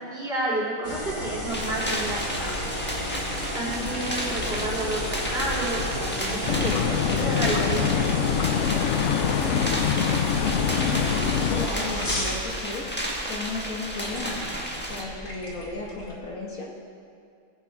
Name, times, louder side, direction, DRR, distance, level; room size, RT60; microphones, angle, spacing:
voice 1, 0.0-2.6 3.5-8.1, right 2 dB, 35° right, -8 dB, 3.9 m, -30 dB
sound 1, 0.8-16.2, left 1 dB, 30° left, 1.7 m, -32 dB
sound 2, 1.5-15.0, equal, 5° left, 1.3 m, -32 dB
voice 2, 3.6-4.0 9.4-12.9 13.2-14.4 14.9-16.7, left 3 dB, 50° left, -4 dB, 2.0 m, -35 dB
sound 3, 6.5-11.7, left 9 dB, 75° left, 0.6 m, -25 dB
19.0 x 6.8 x 5.0 m, 2.3 s
omnidirectional pair, 1.9 m